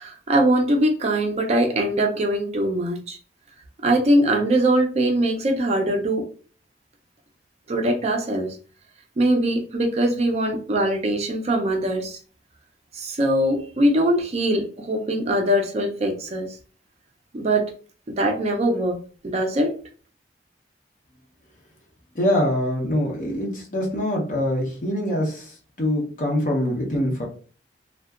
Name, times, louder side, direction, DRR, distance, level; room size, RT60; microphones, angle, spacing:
voice 1, 0.0-3.2 3.8-6.3 7.7-8.6 9.2-12.2 12.9-16.6 17.3-17.7 18.1-19.0 19.2-19.8, right 1 dB, 35° right, 0.4 m, -22 dB
voice 2, 22.1-25.4 25.8-27.3, left 1 dB, 45° left, 0.7 m, -24 dB
2.6 x 2.1 x 2.3 m
head